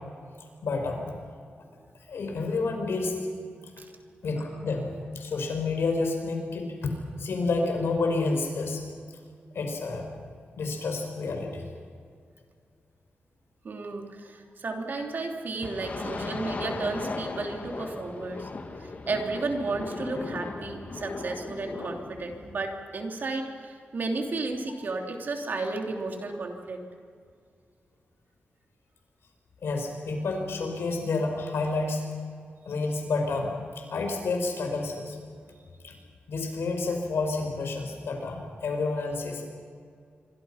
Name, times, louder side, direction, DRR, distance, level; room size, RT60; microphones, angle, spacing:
voice 1, 0.6-1.1 2.1-3.2 4.2-6.9 7.2-8.8 9.5-10.1 10.6-11.6 29.6-32.0 32.7-33.6 33.9-35.2 35.8-35.9 36.3-39.5, left 3 dB, 85° left, 3 dB, 5.5 m, -29 dB
voice 2, 13.6-18.5 18.8-26.8, right 3 dB, 50° right, 2 dB, 3.2 m, -33 dB
sound 1, 15.6-22.6, left 3 dB, 40° left, 2.1 m, -37 dB
27.5 x 24.5 x 5.9 m, 2.2 s
wide cardioid pair, 180°, 4 cm